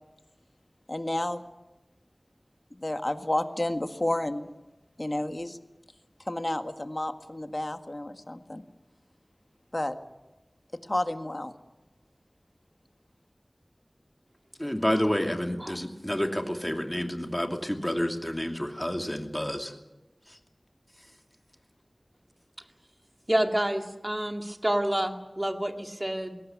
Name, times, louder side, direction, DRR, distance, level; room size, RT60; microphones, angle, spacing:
voice 1, 0.9-1.4 2.7-4.5 5.0-5.6 6.2-8.6 9.7-9.9 10.9-11.5, left 1 dB, 40° left, 8 dB, 1.6 m, -31 dB
voice 2, 14.6-19.7 20.3-20.4, equal, 15° left, 4 dB, 2.7 m, -29 dB
voice 3, 23.3-26.4, right 1 dB, 30° right, 5 dB, 2.2 m, -28 dB
20.5 x 18.0 x 9.5 m, 1.0 s
wide cardioid pair, 45°, 0 cm